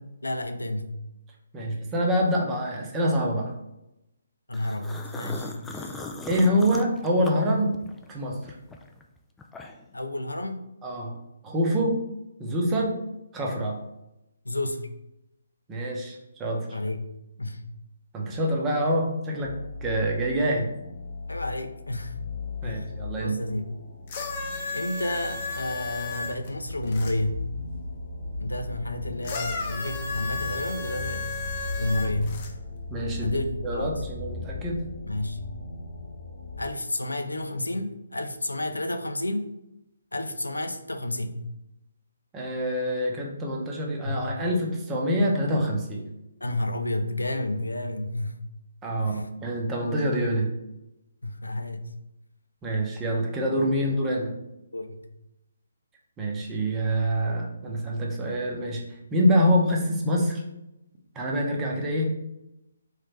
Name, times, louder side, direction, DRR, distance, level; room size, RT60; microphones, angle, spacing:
voice 1, 0.2-1.0 1.6-1.7 4.5-6.0 9.9-10.7 14.4-14.9 16.7-17.1 17.4-17.7 21.3-22.2 22.6-22.9 23.2-23.7 24.7-27.5 28.4-31.3 31.8-32.3 33.2-33.5 33.7-34.0 35.1-35.5 36.6-39.5 40.1-41.5 44.0-44.3 46.4-48.4 49.0-49.3 51.2-51.9 54.7-55.0, left 1 dB, 80° left, 6 dB, 0.5 m, -31 dB
voice 2, 1.5-3.5 6.3-7.7 8.1-8.5 10.8-11.2 11.4-12.0 12.4-13.0 13.3-13.8 15.7-16.7 18.1-19.5 19.8-20.7 22.6-23.4 32.9-33.4 33.6-34.9 42.3-46.0 48.8-50.5 52.6-54.3 56.2-58.8 59.1-60.4 61.1-62.1, equal, 15° right, -1 dB, 0.7 m, -26 dB
sound 1, 4.5-8.1 8.5-10.0, left 3 dB, 5° left, 0.3 m, -39 dB
sound 2, 19.3-36.7, left 3 dB, 50° left, 1.1 m, -37 dB
sound 3, 24.1-27.1 29.2-32.5 33.4-33.5, left 4 dB, 35° left, 0.7 m, -34 dB
3.7 x 3.1 x 3.3 m, 0.89 s
figure-of-eight pair, 140°, 0 cm